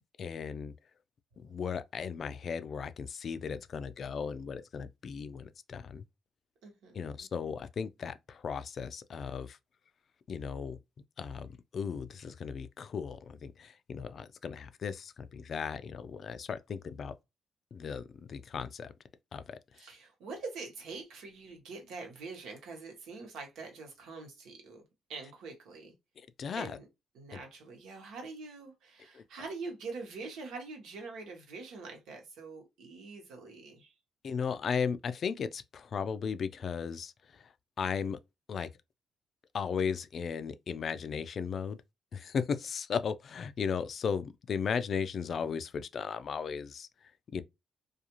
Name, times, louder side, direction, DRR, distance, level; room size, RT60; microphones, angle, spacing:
voice 1, 0.2-0.7 1.4-6.0 6.9-9.6 10.3-10.8 11.2-17.1 17.7-18.9 19.3-19.9 26.2-26.8 27.3-27.4 29.1-29.2 34.2-38.2 38.5-38.7 39.5-41.8 42.1-47.4, left 6 dB, 55° left, 0.3 m, -36 dB
voice 2, 6.6-7.0 19.8-24.8 25.1-25.9 26.6-26.9 27.1-33.9, right 4 dB, 85° right, 1.0 m, -44 dB
2.4 x 2.4 x 2.9 m
cardioid pair, 90°, 0 cm